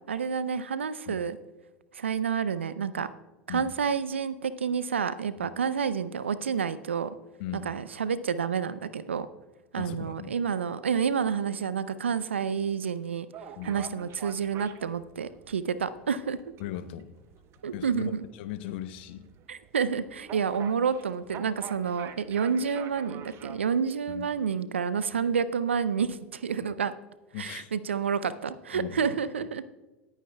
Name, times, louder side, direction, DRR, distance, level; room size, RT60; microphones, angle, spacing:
voice 1, 0.1-1.4 1.9-3.1 3.5-7.1 7.5-9.3 9.7-13.3 13.6-16.4 17.6-18.2 19.5-26.9 27.4-29.6, right 6 dB, 85° right, 15 dB, 0.5 m, -29 dB
voice 2, 7.4-7.7 9.7-10.3 13.6-13.8 16.6-17.1 17.7-18.0 18.4-19.3 24.1-24.3 27.3-27.7 28.7-29.0, left 12 dB, 65° left, 12 dB, 0.8 m, -38 dB
sound 1, 13.3-23.6, right 8 dB, 45° right, 0.9 m, -47 dB
19.0 x 9.1 x 2.2 m, 1.1 s
hypercardioid pair, 80°, 6 cm